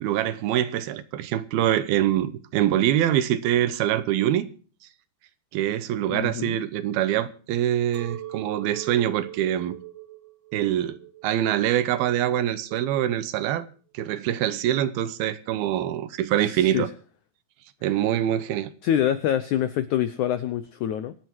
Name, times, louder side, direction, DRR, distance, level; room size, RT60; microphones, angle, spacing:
voice 1, 0.0-4.5 5.5-9.8 10.5-11.0 11.2-13.7 13.9-16.9 17.8-18.7, right 11 dB, 75° right, 2.7 m, -24 dB
voice 2, 6.1-6.6 16.4-16.9 18.8-21.1, left 10 dB, 80° left, 1.7 m, -26 dB
Chink clink, 7.9-13.1, right 13 dB, 45° right, 1.7 m, -42 dB
26.0 x 9.5 x 4.6 m
omnidirectional pair, 4.6 m